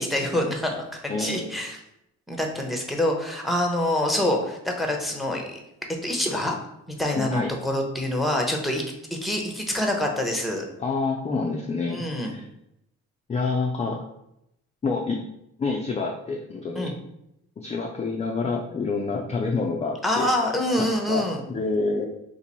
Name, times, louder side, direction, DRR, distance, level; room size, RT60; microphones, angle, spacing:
voice 1, 0.0-1.8 2.3-5.6 6.0-6.6 6.9-8.8 9.1-10.6 11.9-12.3 16.7-16.9 20.0-21.4, left 1 dB, ahead, 1 dB, 0.7 m, -26 dB
voice 2, 1.1-1.6 7.2-7.5 10.8-12.4 13.3-14.0 14.8-15.2 15.6-16.9 17.6-20.3 20.8-22.1, left 3 dB, 25° left, 0 dB, 0.4 m, -28 dB
2.9 x 2.6 x 4.0 m, 0.81 s
cardioid pair, 90°, 30 cm